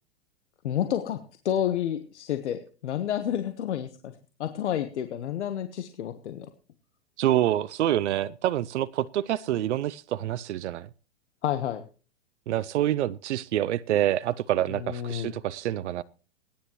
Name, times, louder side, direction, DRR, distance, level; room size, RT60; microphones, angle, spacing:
voice 1, 0.6-1.2 1.4-4.1 4.4-6.5 11.4-11.8 14.7-15.3, left 10 dB, 70° left, 1.3 m, -30 dB
voice 2, 7.2-10.9 12.5-16.0, right 12 dB, 75° right, 0.6 m, -27 dB
20.5 x 10.5 x 3.1 m
hypercardioid pair, 120°, 35 cm